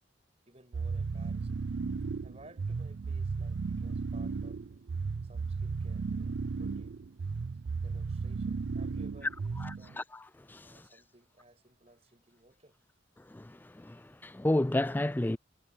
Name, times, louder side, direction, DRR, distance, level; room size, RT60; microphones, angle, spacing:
voice 1, 0.5-1.6 2.2-7.0 7.8-10.0 10.6-12.8, right 1 dB, 30° right, 7.1 m, -59 dB
sound 1, 0.7-10.0, right 4 dB, 65° right, 0.4 m, -35 dB
voice 2, 9.6-10.2 10.5-10.8 13.3-15.4, left 1 dB, 10° left, 0.3 m, -32 dB
head